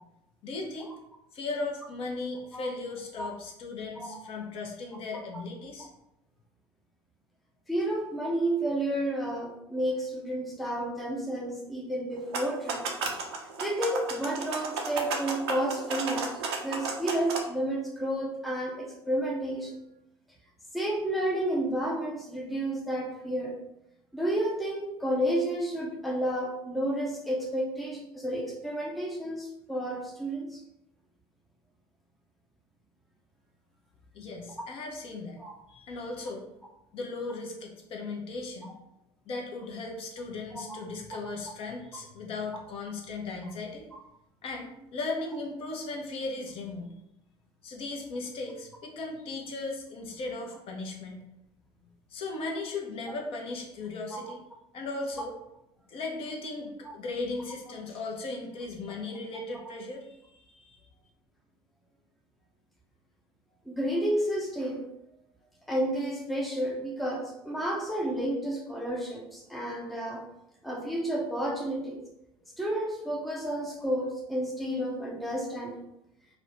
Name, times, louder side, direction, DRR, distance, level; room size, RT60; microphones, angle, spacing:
voice 1, 0.4-0.9 1.3-5.9 34.1-35.4 35.7-36.5 36.9-38.7 39.3-43.9 44.4-46.9 47.6-51.2 52.1-54.4 54.7-55.3 55.9-60.8, left 3 dB, 45° left, 1 dB, 0.6 m, -37 dB
voice 2, 7.7-12.9 13.6-16.3 16.6-19.8 20.7-23.6 24.1-30.6 35.4-35.5 40.5-40.8 43.9-44.0 54.1-54.2 56.8-56.9 63.7-64.8 65.7-70.2 70.6-72.0 72.6-75.8, right 1 dB, ahead, -1 dB, 0.5 m, -31 dB
sound 1, 12.2-17.4, right 4 dB, 75° right, 0.5 m, -33 dB
2.5 x 2.1 x 2.9 m, 0.84 s
figure-of-eight pair, 65°, 14 cm